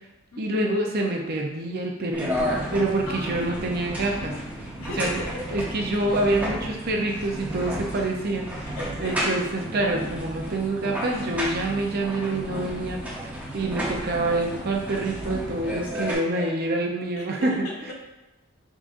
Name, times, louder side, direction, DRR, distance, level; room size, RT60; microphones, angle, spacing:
voice 1, 0.4-4.4 5.0-5.2 5.5-8.5 9.0-17.5, right 2 dB, 45° right, 1 dB, 0.5 m, -26 dB
sound 1, 2.1-16.1, equal, 5° right, 0.8 m, -32 dB
voice 2, 3.1-3.5 4.8-5.6 8.6-9.5 11.0-11.3 15.6-16.6 17.2-17.9, left 1 dB, 85° left, -2 dB, 1.1 m, -38 dB
5.0 x 3.7 x 2.5 m, 1.0 s
head